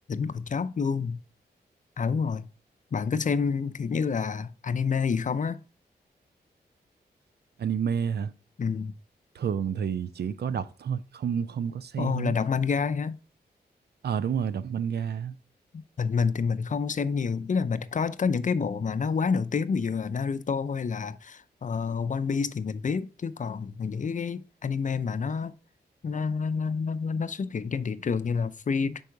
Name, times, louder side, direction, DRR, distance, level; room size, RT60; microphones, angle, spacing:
voice 1, 0.1-1.2 2.0-2.4 2.9-5.6 8.6-8.9 12.0-13.2 15.7-25.5 26.0-29.0, left 5 dB, 45° left, 0.5 m, -28 dB
voice 2, 7.6-8.3 9.3-12.3 14.0-15.3, right 7 dB, 70° right, 0.5 m, -29 dB
5.5 x 4.7 x 4.5 m
cardioid pair, 55°, 17 cm